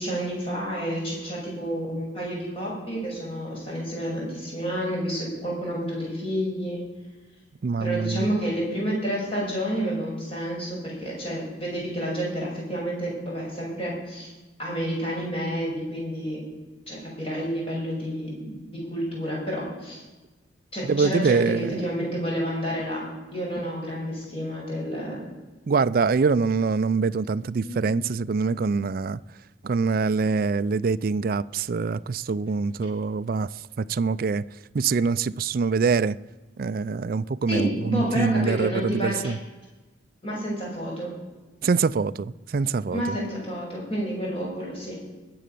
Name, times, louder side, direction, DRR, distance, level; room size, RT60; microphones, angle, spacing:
voice 1, 0.0-6.8 7.8-14.3 14.6-16.4 16.9-20.0 20.7-23.0 23.3-25.2 27.6-27.9 37.5-39.3 40.2-41.1 42.9-45.0, equal, 30° left, 6.4 m, -30 dB
voice 2, 7.6-8.3 20.8-21.9 25.7-29.2 29.6-34.4 34.7-36.2 36.6-39.4 41.6-43.2, right 4 dB, 45° right, 0.4 m, -24 dB
20.0 x 7.8 x 6.8 m
head